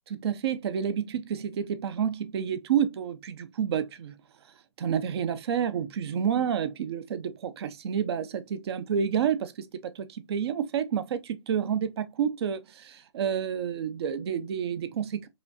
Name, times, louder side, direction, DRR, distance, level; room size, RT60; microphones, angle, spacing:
voice 1, 0.1-4.1 4.8-15.3, right 8 dB, 60° right, 0.5 m, -29 dB
5.0 x 2.3 x 2.6 m
hypercardioid pair, 130°, 15 cm